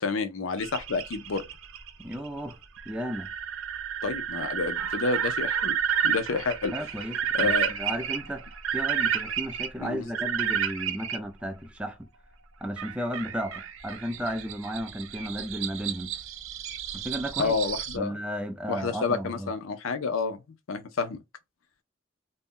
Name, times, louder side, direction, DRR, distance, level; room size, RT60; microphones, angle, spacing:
voice 1, 0.0-1.4 4.0-5.8 6.0-6.7 7.3-7.8 9.8-10.1 17.4-18.1 18.7-20.4 20.7-21.2, left 4 dB, 80° left, 0.5 m, -29 dB
sound 1, 0.6-11.2 12.8-18.0, right 8 dB, 75° right, 0.5 m, -31 dB
voice 2, 2.0-2.6 2.9-3.3 6.7-12.0 12.6-16.1 16.9-17.5 17.9-19.5, equal, 5° right, 0.3 m, -34 dB
2.6 x 2.1 x 3.5 m
head